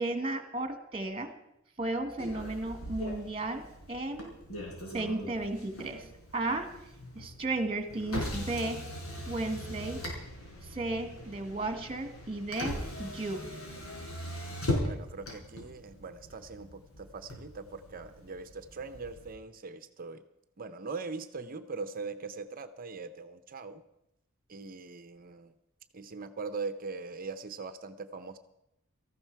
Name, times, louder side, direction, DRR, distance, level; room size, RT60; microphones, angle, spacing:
voice 1, 0.0-1.3 1.8-4.3 4.9-6.0 6.3-6.7 7.2-8.8 9.3-10.0 10.7-13.5, right 2 dB, 25° right, 7 dB, 1.8 m, -34 dB
Motor vehicle (road), 2.2-19.3, left 1 dB, 90° left, 5.1 m, -40 dB
voice 2, 14.8-20.2 20.6-23.8 24.5-25.5 25.9-28.4, right 4 dB, 45° right, 10 dB, 0.8 m, -41 dB
18.0 x 14.0 x 4.7 m, 0.85 s
head